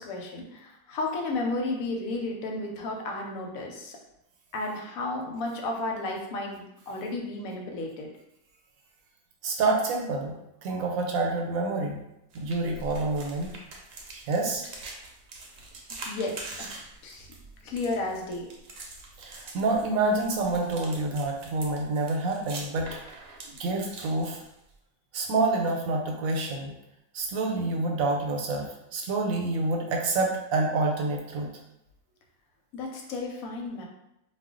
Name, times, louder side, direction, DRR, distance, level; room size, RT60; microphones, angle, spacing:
voice 1, 0.0-4.0 4.5-8.1 16.1-16.7 17.0-17.3 17.6-18.5 32.7-33.8, left 2 dB, 90° left, 1 dB, 1.1 m, -33 dB
voice 2, 9.4-10.3 10.6-12.0 12.3-13.5 14.1-14.6 19.2-23.0 23.6-24.4 25.1-26.7 27.1-31.5, right 3 dB, 90° right, 1 dB, 1.1 m, -27 dB
sound 1, 12.3-24.7, right 2 dB, 65° right, 0.8 m, -44 dB
2.4 x 2.2 x 3.6 m, 0.85 s
omnidirectional pair, 1.4 m